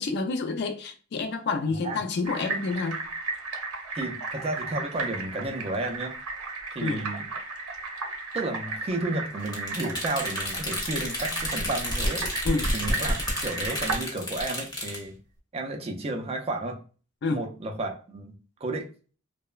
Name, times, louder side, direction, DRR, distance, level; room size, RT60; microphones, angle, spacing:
voice 1, 0.0-3.0 6.8-7.1 12.4-12.7 17.2-17.4, left 3 dB, 50° left, 0.4 m, -29 dB
sound 1, 2.3-14.0, right 3 dB, 80° right, 0.6 m, -35 dB
voice 2, 3.9-6.2 6.7-7.3 8.3-12.3 12.7-15.2 15.5-16.8 17.3-18.3 18.6-18.9, right 2 dB, 30° right, 0.3 m, -32 dB
sound 2, 9.4-15.0, left 1 dB, 20° left, 0.7 m, -30 dB
2.9 x 2.0 x 2.3 m
head